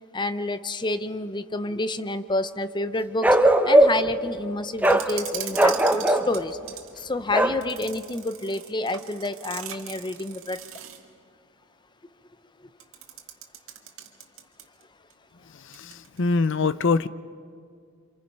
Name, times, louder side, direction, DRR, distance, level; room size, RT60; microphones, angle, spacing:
voice 1, 0.1-3.3 3.7-6.6 7.1-10.6, left 2 dB, 20° left, 0.7 m, -29 dB
Bark, 3.2-4.1 4.8-5.1 5.5-6.3 7.3-7.6, right 1 dB, 5° right, 0.9 m, -18 dB
sound 1, 4.8-6.9 7.6-11.1 12.8-14.8 15.1-15.2 15.7-16.2, right 10 dB, 65° right, 2.0 m, -40 dB
voice 2, 15.8-17.1, left 4 dB, 60° left, 0.6 m, -23 dB
29.0 x 26.5 x 5.4 m
head